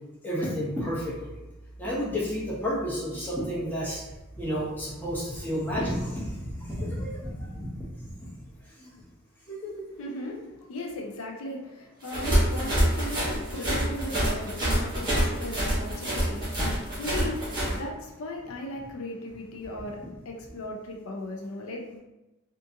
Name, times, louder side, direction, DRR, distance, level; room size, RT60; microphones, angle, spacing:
voice 1, 0.2-1.3 1.8-4.0 4.4-7.8 9.5-10.1, equal, 10° left, -6 dB, 0.6 m, -31 dB
voice 2, 10.0-10.4 10.7-22.0, left 1 dB, 70° left, 1 dB, 0.4 m, -37 dB
Bat Wings (Slow), 12.0-17.7, right 1 dB, 20° right, 0.9 m, -26 dB
2.6 x 2.5 x 2.5 m, 1.0 s
head